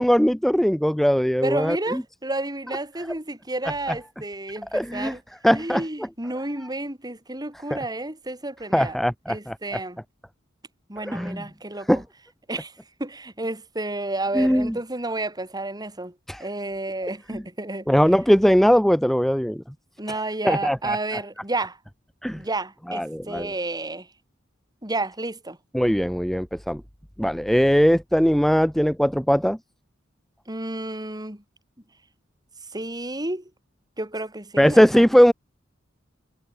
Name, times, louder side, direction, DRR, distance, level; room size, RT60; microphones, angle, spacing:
voice 1, 0.0-2.0 3.9-4.0 4.7-5.2 5.4-5.8 7.7-7.8 8.7-9.8 11.1-11.4 11.9-12.0 14.3-14.8 16.3-16.4 17.3-17.4 17.9-19.6 20.1-20.2 20.4-21.0 22.2-22.4 22.9-23.5 25.7-26.8 27.2-29.6 34.6-35.3, equal, ahead, 0.6 m, -20 dB
voice 2, 1.4-5.2 5.5-9.0 9.3-10.0 10.9-12.0 12.5-12.7 13.0-16.1 16.4-17.9 20.0-21.8 22.4-24.1 24.8-25.6 30.5-31.4 32.7-33.4 34.0-35.1, right 2 dB, 20° right, 5.5 m, -31 dB
head